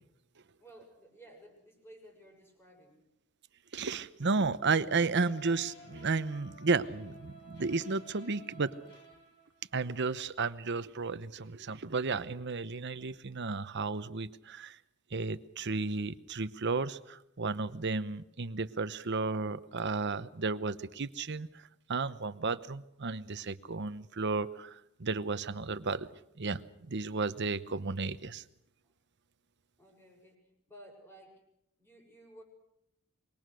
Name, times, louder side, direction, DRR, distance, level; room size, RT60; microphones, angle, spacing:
voice 1, 0.6-3.0 28.8-28.9 29.8-31.4 31.8-32.4, right 1 dB, 10° left, 1 dB, 6.9 m, -55 dB
voice 2, 3.7-8.7 9.7-14.8 15.1-21.5 21.9-26.1 26.4-28.4, right 4 dB, 60° right, 13 dB, 0.9 m, -33 dB
sound 1, 4.9-9.8, right 1 dB, 55° left, 4.9 m, -54 dB
25.5 x 22.5 x 6.4 m, 0.78 s
head